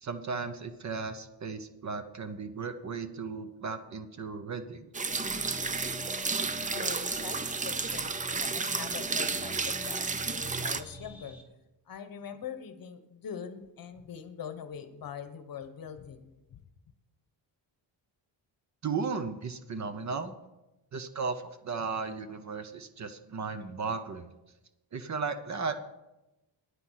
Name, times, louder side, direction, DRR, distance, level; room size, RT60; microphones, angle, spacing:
voice 1, 0.0-4.9 18.8-20.3 20.9-24.3 24.9-25.8, right 5 dB, 35° right, 10 dB, 0.7 m, -35 dB
sound 1, 4.9-10.8, right 4 dB, 20° right, 0.3 m, -32 dB
sound 2, 5.1-11.4, right 1 dB, 5° right, 1.1 m, -45 dB
voice 2, 6.7-11.4 11.9-16.6, left 8 dB, 45° left, 10 dB, 1.0 m, -43 dB
9.9 x 9.7 x 6.3 m, 0.97 s
wide cardioid pair, 170°, 48 cm